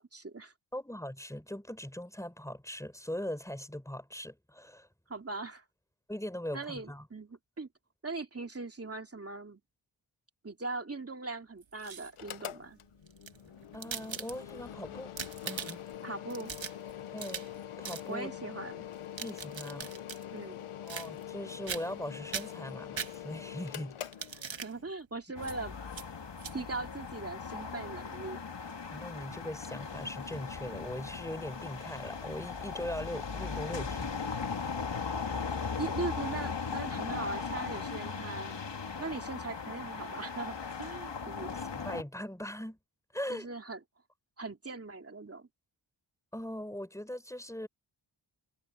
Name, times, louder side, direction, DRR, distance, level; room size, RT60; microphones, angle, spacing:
voice 1, 0.0-0.5 5.1-5.6 6.5-7.7 8.0-9.6 10.4-12.8 16.0-16.5 18.1-18.9 20.3-20.6 24.5-25.8 26.5-28.4 35.8-38.6 39.0-41.6 43.3-43.8 44.4-45.5, right 3 dB, 30° right, 2.7 m, -40 dB
voice 2, 0.7-4.9 6.1-7.1 13.7-15.1 15.4-15.8 17.1-17.4 17.8-18.3 19.2-19.9 20.8-24.0 28.9-34.2 41.7-42.8 43.1-43.5 46.3-47.7, left 1 dB, 5° left, 4.3 m, -40 dB
sound 1, 11.6-12.3 13.1-14.7 15.0-16.0 16.3-17.6 17.8-18.1 18.9-20.2 20.9-21.4 21.7-22.0 22.3-23.5 24.0-24.7 25.4-25.6 25.9-26.1 26.4-26.5, right 7 dB, 65° right, 1.6 m, -41 dB
Mechanical fan, 12.1-24.9, left 11 dB, 80° left, 0.9 m, -44 dB
sound 2, 25.4-42.0, left 5 dB, 60° left, 2.3 m, -38 dB
wide cardioid pair, 75°, 49 cm